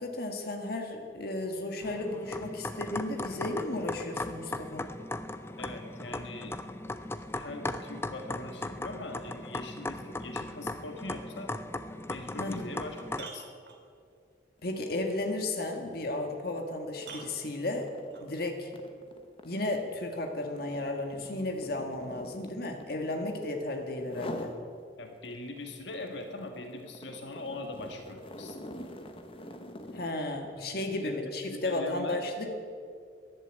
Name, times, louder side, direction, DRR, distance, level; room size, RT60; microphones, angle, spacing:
voice 1, 0.0-4.9 12.4-12.8 14.6-17.9 18.2-18.7 19.4-24.5 29.9-32.5, left 2 dB, 55° left, 3 dB, 1.6 m, -34 dB
sound 1, 1.8-13.3, left 2 dB, 15° left, 0.5 m, -38 dB
voice 2, 5.6-6.5 7.3-11.5 12.1-13.5 25.0-28.6 30.6-30.7 31.0-32.2, left 2 dB, 70° left, 4 dB, 1.6 m, -41 dB
sound 2, 12.7-14.2 16.2-16.3 17.0-18.3 19.7-19.8, right 5 dB, 60° right, 2.3 m, -48 dB
sound 3, 14.6-14.8 15.1-23.6 24.0-24.6 25.1-30.2, left 1 dB, 30° left, 1.1 m, -46 dB
14.5 x 11.0 x 8.9 m, 2.3 s
head